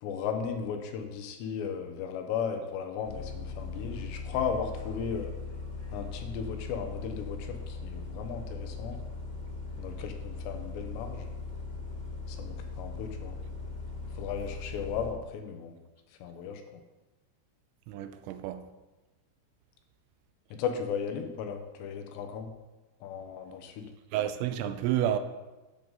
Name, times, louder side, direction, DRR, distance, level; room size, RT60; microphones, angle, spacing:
voice 1, 0.0-5.3 5.9-9.0 9.8-11.3 12.3-13.4 14.2-15.7 16.2-16.8 20.5-22.5 23.0-23.9, left 6 dB, 75° left, 3.0 m, -35 dB
Bus, 3.0-15.1, left 4 dB, 35° left, 2.0 m, -39 dB
voice 2, 17.9-18.6 24.1-25.2, right 11 dB, 85° right, 2.9 m, -30 dB
12.0 x 7.5 x 4.0 m
omnidirectional pair, 5.4 m